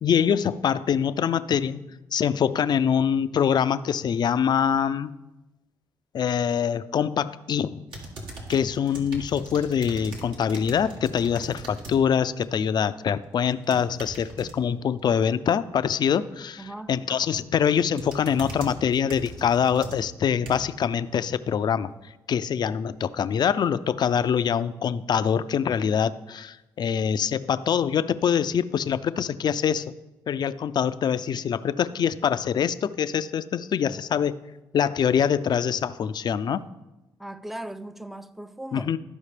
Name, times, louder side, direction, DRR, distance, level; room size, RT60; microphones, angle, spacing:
voice 1, 0.0-1.8 2.1-5.1 6.1-7.8 8.5-21.9 22.3-29.9 30.3-34.4 34.7-36.6 38.7-39.0, left 8 dB, 55° left, 0.4 m, -24 dB
sound 1, 7.9-12.0 12.4-12.7 13.5-14.5 16.9-17.3 17.6-20.8 21.4-21.5, right 1 dB, 75° right, 1.7 m, -40 dB
voice 2, 16.6-16.9 37.2-38.9, right 1 dB, 5° right, 0.4 m, -38 dB
13.5 x 5.0 x 3.3 m
supercardioid pair, 65°, 9 cm